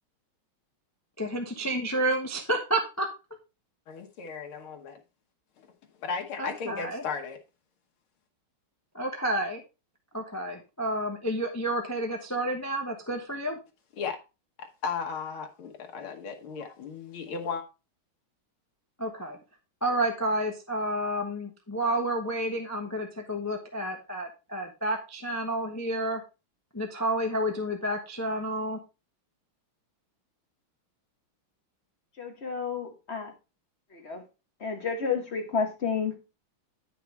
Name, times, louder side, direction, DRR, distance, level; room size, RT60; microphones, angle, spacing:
voice 1, 1.2-3.1 6.4-7.0 8.9-9.6 10.1-13.6 19.0-19.4 19.8-26.2 26.7-28.8, right 1 dB, 20° left, 0.4 m, -30 dB
voice 2, 3.9-5.0 6.0-7.4 14.0-14.2 14.6-17.6, left 5 dB, 85° left, 2.0 m, -35 dB
voice 3, 32.2-33.3 33.9-34.2 34.6-36.2, left 5 dB, 35° left, 1.3 m, -31 dB
9.4 x 5.9 x 3.4 m
omnidirectional pair, 2.3 m